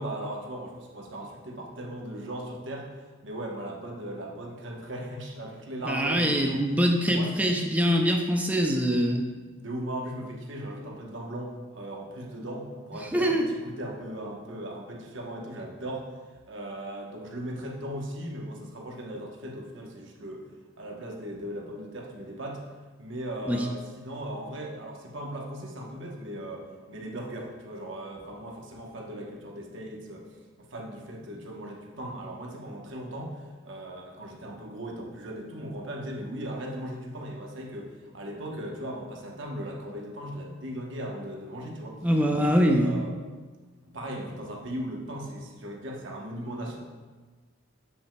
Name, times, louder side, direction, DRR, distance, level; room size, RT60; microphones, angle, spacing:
voice 1, 0.0-2.9 3.2-6.6 7.0-7.3 9.6-16.0 16.5-20.4 20.8-22.6 23.0-30.3 30.6-42.0 42.5-43.1 43.8-46.8, right 1 dB, 65° right, 0 dB, 1.0 m, -38 dB
voice 2, 5.9-9.2 13.1-13.5 23.5-23.7 42.0-42.9, equal, 5° right, 1 dB, 0.4 m, -23 dB
7.9 x 6.0 x 2.2 m, 1.3 s
head